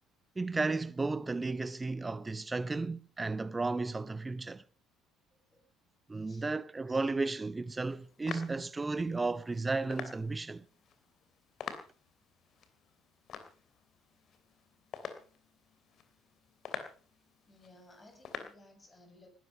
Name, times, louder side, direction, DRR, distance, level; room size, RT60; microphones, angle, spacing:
voice 1, 0.4-4.6 6.1-10.6, right 3 dB, 20° right, 0.7 m, -34 dB
voice 2, 5.3-5.6 6.1-6.5 17.5-19.3, left 1 dB, 25° left, 7.8 m, -59 dB
sound 1, 7.7-18.5, left 7 dB, 50° left, 2.9 m, -48 dB
20.0 x 12.5 x 5.4 m
hypercardioid pair, 60°, 0 cm